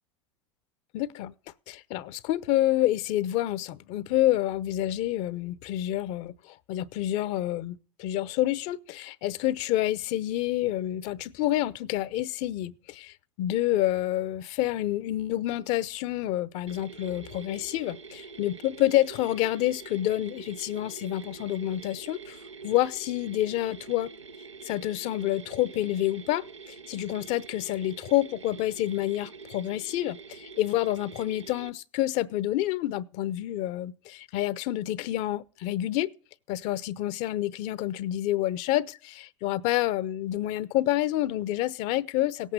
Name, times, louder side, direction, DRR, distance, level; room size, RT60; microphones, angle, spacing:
voice 1, 0.9-1.3 1.7-22.4 22.6-24.1 24.6-36.1 36.5-42.5, left 14 dB, 50° left, 0.8 m, -28 dB
Mechanisms, 16.7-31.7, right 4 dB, 90° right, 0.9 m, -45 dB
17.5 x 8.3 x 6.7 m
hypercardioid pair, 85°, 15 cm